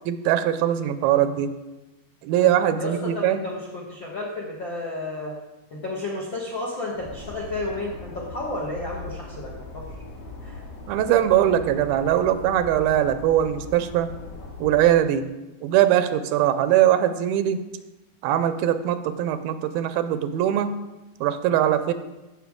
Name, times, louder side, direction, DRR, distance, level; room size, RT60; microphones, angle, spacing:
voice 1, 0.1-1.5 2.2-3.4 10.9-14.1 14.6-15.3 15.6-17.6 18.2-20.7 21.2-21.9, right 11 dB, 85° right, 11 dB, 2.4 m, -21 dB
voice 2, 2.8-5.4 5.7-9.8 10.4-10.6, left 2 dB, 65° left, -4 dB, 1.2 m, -32 dB
sound 1, 6.9-14.9, left 3 dB, 85° left, 3.7 m, -39 dB
15.5 x 6.0 x 3.6 m, 1.0 s
omnidirectional pair, 4.3 m